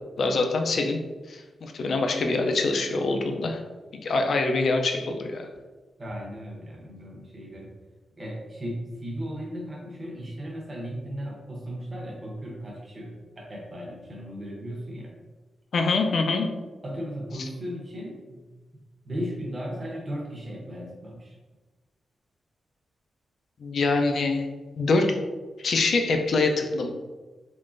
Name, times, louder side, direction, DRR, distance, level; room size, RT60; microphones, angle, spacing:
voice 1, 0.2-1.0 1.3-3.6 3.9-5.5 15.7-16.5 23.6-24.5 24.8-25.2 25.6-26.9, left 3 dB, 50° left, 4 dB, 0.4 m, -24 dB
voice 2, 6.0-7.7 8.2-15.1 16.8-18.4 19.0-21.4, equal, 25° right, -2 dB, 0.8 m, -36 dB
3.6 x 3.2 x 2.5 m, 1.3 s
wide cardioid pair, 175°, 0 cm